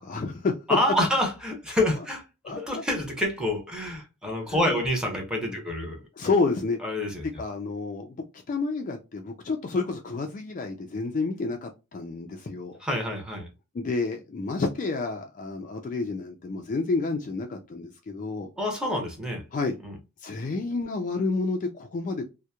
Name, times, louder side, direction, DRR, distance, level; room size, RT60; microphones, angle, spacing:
voice 1, 0.0-0.5 2.4-2.8 4.5-4.8 5.4-5.6 6.1-6.8 7.4-12.8 13.7-18.5 19.5-19.8 20.2-22.2, left 3 dB, 35° left, 0.4 m, -30 dB
voice 2, 0.7-6.0 6.8-7.2 12.8-13.5 18.6-19.4 19.8-19.9, left 1 dB, 5° right, 0.7 m, -27 dB
2.8 x 2.1 x 2.2 m
head